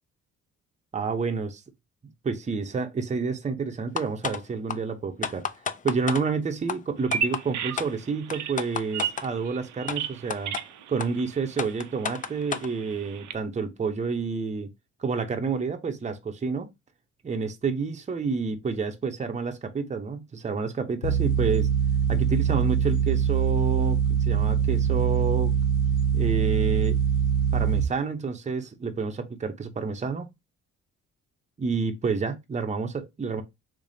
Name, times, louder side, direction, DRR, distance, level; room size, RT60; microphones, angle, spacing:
voice 1, 0.9-1.6 2.2-5.4 5.8-10.5 10.9-14.7 15.0-16.7 17.2-21.7 22.1-24.0 24.3-25.5 26.1-27.0 27.5-30.3 31.6-33.4, right 5 dB, 25° right, 0.7 m, -29 dB
sound 1, 4.0-4.4 4.7-4.8 5.2-6.2 6.7-6.8 7.1-7.4 7.8-7.9 8.3-9.3 9.9-10.0 10.3-10.6 11.0-11.1 11.6-12.7, left 6 dB, 25° left, 0.4 m, -30 dB
Bird vocalization bird call bird song, 7.0-13.3, right 8 dB, 75° right, 0.5 m, -35 dB
sound 2, 21.0-27.9, right 7 dB, 85° left, 0.8 m, -23 dB
3.3 x 3.2 x 2.6 m
cardioid pair, 90°, 30 cm